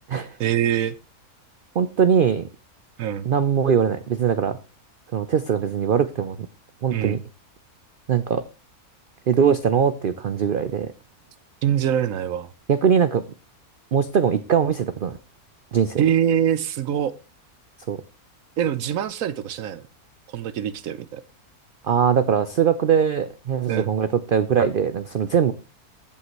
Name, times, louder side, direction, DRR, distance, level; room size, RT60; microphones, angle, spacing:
voice 1, 0.4-1.0 3.0-3.3 6.9-7.2 11.6-12.5 16.0-17.1 18.6-19.8 20.3-21.2 23.7-23.9, right 10 dB, 70° right, 16 dB, 1.0 m, -24 dB
voice 2, 1.7-2.5 3.2-4.6 5.1-6.4 6.8-7.2 8.1-8.4 9.3-10.9 12.7-13.2 13.9-15.2 15.7-16.0 17.9-18.0 21.8-25.5, right 7 dB, 85° right, 13 dB, 0.4 m, -21 dB
15.0 x 5.6 x 3.0 m, 0.29 s
omnidirectional pair, 1.6 m